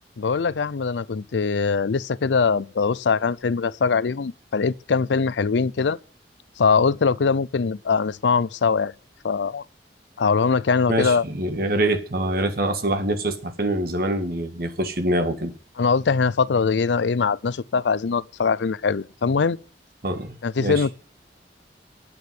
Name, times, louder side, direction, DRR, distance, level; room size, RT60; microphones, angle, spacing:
voice 1, 0.2-6.0 6.6-8.9 9.2-9.6 10.2-11.2 15.8-19.6 20.4-20.9, left 5 dB, 85° left, 0.5 m, -22 dB
voice 2, 10.9-15.5 20.0-20.9, right 1 dB, 60° right, 1.7 m, -25 dB
9.4 x 8.8 x 9.4 m
head